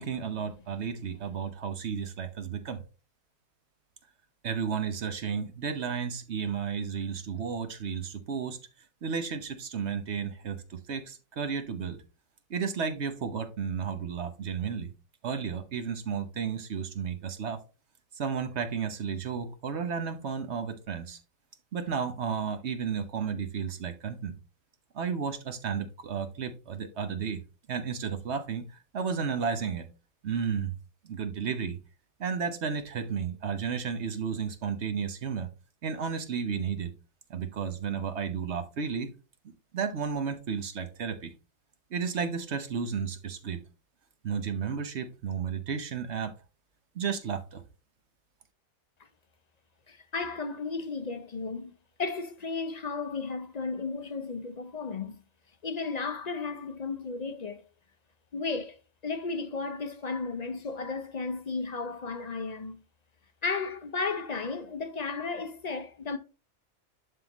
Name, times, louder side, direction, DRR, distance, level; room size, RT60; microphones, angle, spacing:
voice 1, 0.0-2.8 4.4-8.6 9.0-12.0 12.5-14.9 15.2-17.6 18.1-21.2 21.7-24.4 24.9-27.4 27.7-28.6 28.9-29.8 30.2-30.7 31.0-31.8 32.2-35.5 35.8-36.9 37.3-39.1 39.7-41.3 41.9-43.6 44.2-46.3 46.9-47.6, right 6 dB, 55° right, 1.1 m, -33 dB
voice 2, 49.9-51.7 52.0-55.2 55.6-57.6 58.3-58.8 59.0-62.8 63.4-66.2, left 4 dB, 50° left, 0.5 m, -34 dB
11.5 x 3.8 x 3.0 m
omnidirectional pair, 1.5 m